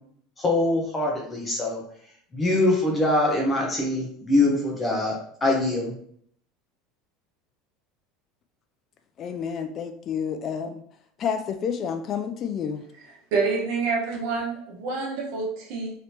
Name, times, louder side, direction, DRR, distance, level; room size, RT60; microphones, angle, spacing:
voice 1, 0.4-1.8 2.3-5.9, left 2 dB, 20° left, 0.9 m, -23 dB
voice 2, 9.2-10.8 11.2-12.8, left 7 dB, 40° left, 0.3 m, -29 dB
voice 3, 13.3-16.0, right 4 dB, 70° right, 1.1 m, -27 dB
3.1 x 2.9 x 2.8 m
supercardioid pair, 105°, 0 cm